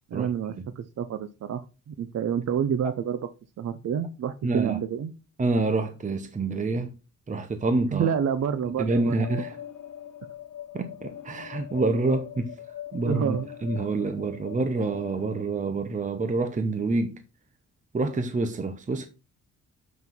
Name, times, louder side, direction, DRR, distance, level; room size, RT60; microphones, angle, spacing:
voice 1, 0.1-3.3 3.6-5.1 7.9-9.2 13.0-13.5, right 8 dB, 55° right, 0.7 m, -28 dB
voice 2, 4.4-4.8 5.4-6.9 7.3-8.1 8.8-9.6 10.7-12.5 12.9-17.2 17.9-19.1, right 3 dB, 25° right, 0.9 m, -27 dB
sound 1, 9.2-15.4, left 10 dB, 70° left, 1.2 m, -41 dB
7.3 x 6.0 x 6.1 m
wide cardioid pair, 150°, 32 cm